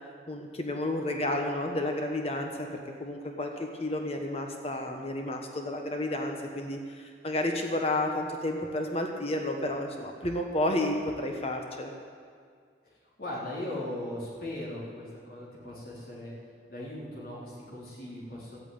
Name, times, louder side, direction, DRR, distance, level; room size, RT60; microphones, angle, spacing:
voice 1, 0.3-11.9, left 1 dB, 35° left, 3 dB, 1.1 m, -31 dB
voice 2, 13.2-16.3 16.7-18.6, left 1 dB, 50° left, -6 dB, 4.2 m, -38 dB
13.5 x 8.7 x 9.1 m, 2.1 s
head